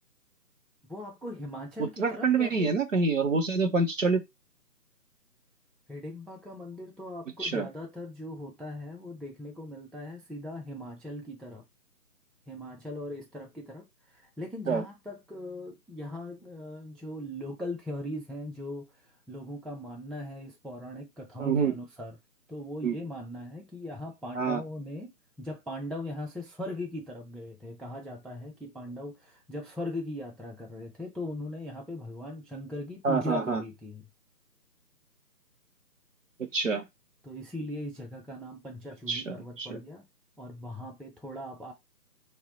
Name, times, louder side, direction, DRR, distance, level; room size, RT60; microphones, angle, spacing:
voice 1, 0.9-2.7 5.9-11.6 12.5-22.2 22.5-25.1 25.4-34.0 37.2-40.1 40.4-41.7, left 1 dB, ahead, 0.3 m, -39 dB
voice 2, 1.8-4.2 7.4-7.7 14.7-14.8 21.4-21.7 22.8-23.0 24.4-24.6 33.0-33.6 36.5-36.8 39.1-39.8, right 4 dB, 50° right, 0.6 m, -27 dB
3.4 x 2.0 x 3.9 m
hypercardioid pair, 170°, 49 cm